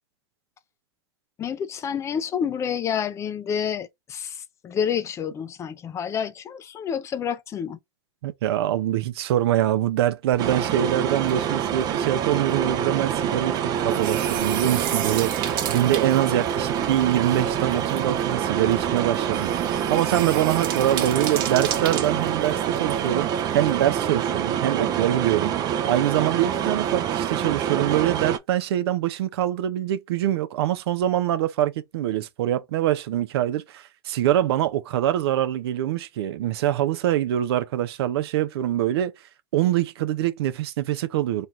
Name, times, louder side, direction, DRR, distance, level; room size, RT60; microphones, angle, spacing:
voice 1, 1.4-7.8, left 8 dB, 20° left, 0.5 m, -29 dB
voice 2, 8.2-25.5 25.8-39.1 39.5-41.5, right 12 dB, 70° right, 0.7 m, -24 dB
sound 1, 10.3-23.8, right 9 dB, 55° right, 1.1 m, -36 dB
sound 2, 10.4-28.4, right 9 dB, 30° right, 0.5 m, -26 dB
3.2 x 2.4 x 4.2 m
supercardioid pair, 135°, 13 cm